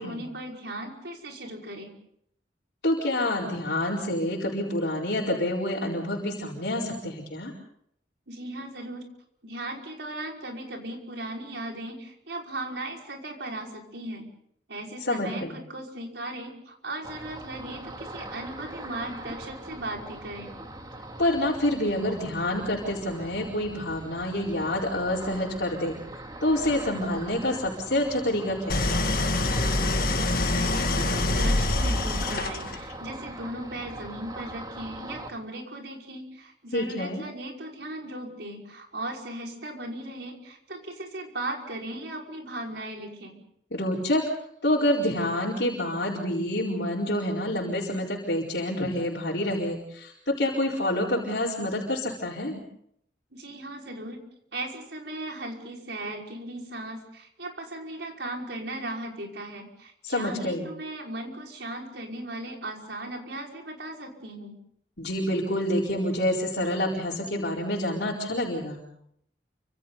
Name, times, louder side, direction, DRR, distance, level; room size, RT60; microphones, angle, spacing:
voice 1, 0.0-1.9 8.3-9.1 9.4-14.3 14.7-20.5 29.9-43.4 53.3-54.2 54.5-64.5, right 1 dB, 75° right, 0 dB, 5.4 m, -37 dB
voice 2, 2.8-7.5 15.0-15.5 21.2-25.9 26.4-29.0 36.7-37.2 43.7-44.3 44.6-52.6 60.0-60.7 65.0-68.8, left 1 dB, 70° left, -5 dB, 4.5 m, -27 dB
Ocean, 17.0-35.3, right 1 dB, 25° right, 2.6 m, -41 dB
Idling, 28.7-32.9, left 2 dB, 55° left, 1.8 m, -25 dB
29.5 x 26.0 x 4.1 m, 0.69 s
head